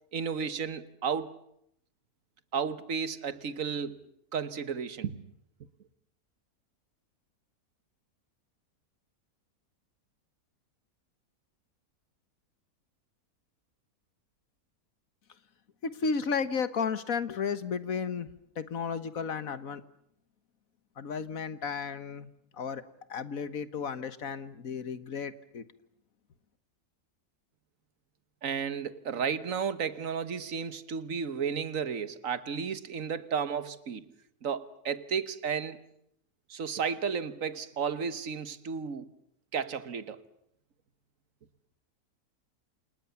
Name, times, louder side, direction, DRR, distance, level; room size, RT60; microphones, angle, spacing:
voice 1, 0.1-1.4 2.5-4.1 4.3-5.2 28.4-34.1 34.4-35.8 36.5-39.1 39.5-40.2, right 6 dB, 60° right, 1.7 m, -33 dB
voice 2, 15.8-18.3 18.6-19.8 21.0-22.8 23.1-25.7, left 5 dB, 65° left, 1.8 m, -33 dB
29.5 x 28.0 x 7.1 m
omnidirectional pair, 1.6 m